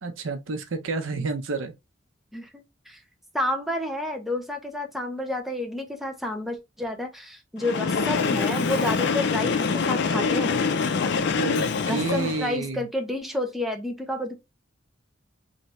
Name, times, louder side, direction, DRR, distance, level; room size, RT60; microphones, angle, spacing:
voice 1, 0.0-1.7 11.4-12.9, right 3 dB, 90° right, 0.7 m, -30 dB
voice 2, 2.3-3.0 3.3-10.6 11.8-14.4, left 1 dB, ahead, 0.6 m, -30 dB
Train, 7.6-12.6, left 5 dB, 60° left, 0.5 m, -25 dB
3.3 x 2.7 x 3.0 m
head